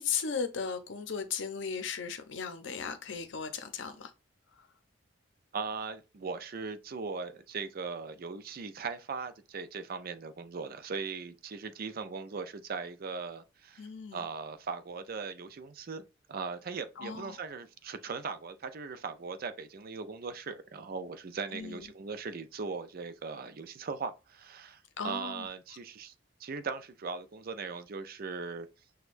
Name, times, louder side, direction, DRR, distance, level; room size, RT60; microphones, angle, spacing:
voice 1, 0.0-4.1 13.8-14.2 17.0-17.4 21.5-21.9 25.0-25.5, left 6 dB, 70° left, 0.6 m, -36 dB
voice 2, 5.5-26.1 26.4-28.7, right 5 dB, 50° right, 0.5 m, -39 dB
6.2 x 2.3 x 2.5 m
head